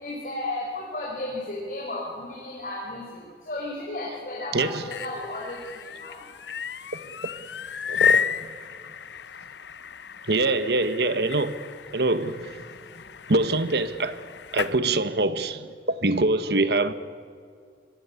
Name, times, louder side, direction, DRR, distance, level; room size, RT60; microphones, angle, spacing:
voice 1, 0.0-6.1, left 2 dB, 45° left, 5.1 m, -34 dB
voice 2, 4.5-4.8 7.9-8.5 10.3-11.6 11.9-12.6 13.3-14.2 14.5-16.9, right 2 dB, 65° right, 1.3 m, -24 dB
sound 1, 4.7-14.8, left 7 dB, 75° left, 0.7 m, -32 dB
25.5 x 21.5 x 8.4 m
head